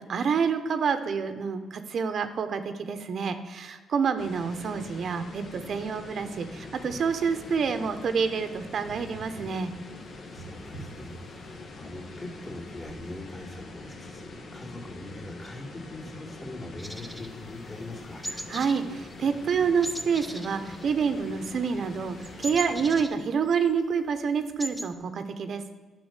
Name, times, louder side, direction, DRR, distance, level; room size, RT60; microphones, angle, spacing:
voice 1, 0.1-9.7 18.5-25.8, right 6 dB, 55° right, 9 dB, 0.9 m, -28 dB
sound 1, 4.2-23.1, left 2 dB, 50° left, 1.6 m, -44 dB
sound 2, 6.6-11.9 12.9-13.2, right 2 dB, 85° left, 3.3 m, -48 dB
voice 2, 10.3-18.3, left 2 dB, 35° left, -3 dB, 3.0 m, -42 dB
sound 3, 16.8-17.9 18.2-18.8 19.1-19.3 19.8-21.4 21.6-23.7 24.1-24.2 24.4-24.9, right 1 dB, ahead, 1.0 m, -38 dB
10.5 x 6.0 x 8.1 m, 1.3 s
cardioid pair, 90°, 0 cm